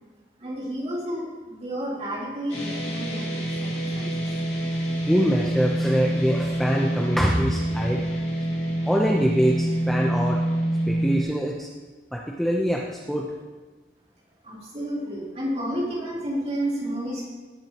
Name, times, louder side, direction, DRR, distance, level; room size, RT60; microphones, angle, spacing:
voice 1, 0.4-4.1 14.4-17.2, equal, 35° right, -6 dB, 3.6 m, -31 dB
sound 1, 2.5-11.2, right 1 dB, 35° left, 3.8 m, -26 dB
voice 2, 5.0-8.0 8.8-10.5 10.9-11.7 12.1-13.3, equal, ahead, -2 dB, 0.7 m, -24 dB
18.0 x 8.8 x 3.0 m, 1.4 s
head